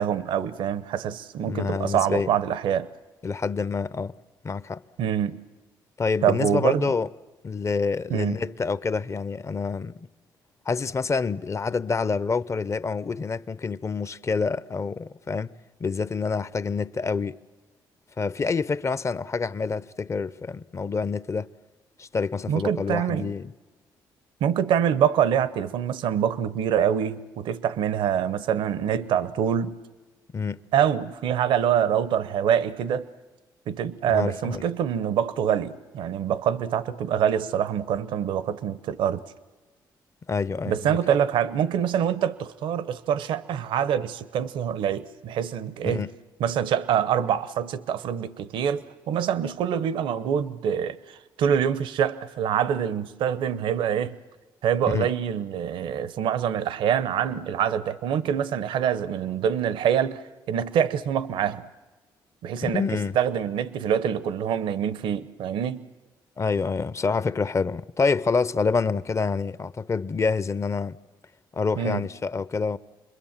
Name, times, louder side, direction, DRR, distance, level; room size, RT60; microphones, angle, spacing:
voice 1, 0.0-2.9 5.0-5.4 6.2-6.9 8.1-8.4 22.5-23.3 24.4-29.8 30.7-33.1 33.7-39.2 40.7-46.1 46.4-54.2 54.6-61.6 62.4-65.9 71.8-72.0, right 9 dB, 80° right, 0.9 m, -25 dB
voice 2, 1.4-2.3 3.2-4.1 4.4-4.8 6.0-7.1 7.4-10.1 10.7-15.5 15.8-17.4 18.2-21.5 22.0-23.5 30.3-30.6 34.1-34.6 40.3-41.0 45.8-46.1 54.9-55.1 62.6-63.2 66.4-71.0 71.5-72.8, left 4 dB, 35° left, 0.7 m, -27 dB
27.5 x 21.5 x 7.4 m
supercardioid pair, 65°, 8 cm